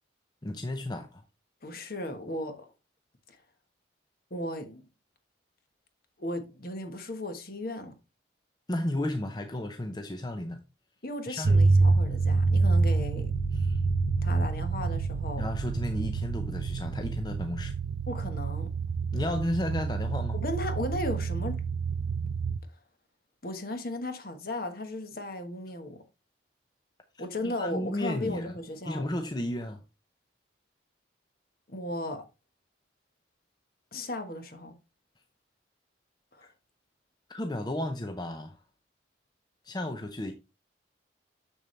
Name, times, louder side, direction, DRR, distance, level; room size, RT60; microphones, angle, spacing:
voice 1, 0.4-1.2 8.7-10.6 11.3-11.6 13.5-13.8 15.4-17.7 19.1-20.4 27.1-28.6 28.8-29.8 36.4-36.5 37.3-38.6 39.6-40.3, left 1 dB, 20° left, 0.6 m, -33 dB
voice 2, 1.6-2.7 3.3-3.4 4.3-4.9 6.2-7.9 11.0-13.3 14.2-15.5 18.1-18.7 20.3-21.6 23.4-26.0 27.2-29.1 31.7-32.2 33.9-34.7 36.3-36.5, left 1 dB, 50° left, 1.3 m, -36 dB
sound 1, 11.4-22.6, right 3 dB, 85° right, 0.5 m, -27 dB
7.1 x 6.9 x 3.2 m
head